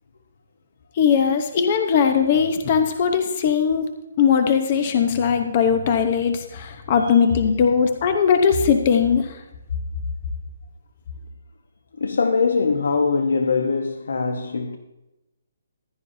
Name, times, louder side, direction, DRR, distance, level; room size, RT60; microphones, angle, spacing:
voice 1, 1.0-3.9 4.2-9.4, left 7 dB, 30° left, 0.9 m, -19 dB
voice 2, 11.9-14.8, left 4 dB, 80° left, 1.0 m, -22 dB
15.5 x 11.0 x 2.7 m
hypercardioid pair, 175°, 0 cm